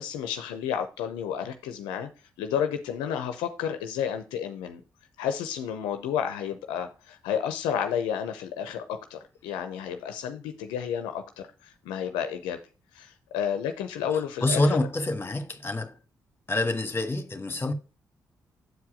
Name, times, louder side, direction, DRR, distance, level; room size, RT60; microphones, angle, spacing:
voice 1, 0.0-2.1 2.4-4.8 5.2-12.6 12.9-14.8, left 8 dB, 85° left, 0.7 m, -31 dB
voice 2, 14.1-16.0 16.5-17.7, left 2 dB, 25° left, 1.6 m, -27 dB
8.0 x 4.7 x 5.0 m
hypercardioid pair, 45°, 8 cm